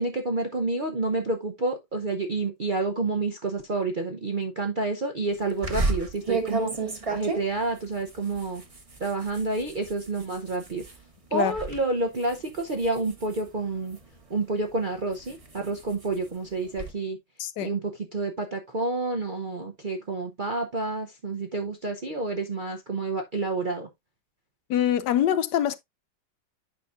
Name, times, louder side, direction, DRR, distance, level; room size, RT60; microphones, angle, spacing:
voice 1, 0.0-8.6 9.0-10.8 11.3-14.0 14.3-17.2 17.6-23.9, right 3 dB, 45° right, 0.6 m, -29 dB
sound 1, 5.6-11.0 11.4-11.8 12.1-14.2 14.7-16.9, right 3 dB, 25° right, 1.0 m, -33 dB
voice 2, 17.4-17.7 24.7-25.8, left 10 dB, 75° left, 1.1 m, -24 dB
9.1 x 5.7 x 2.5 m
omnidirectional pair, 1.9 m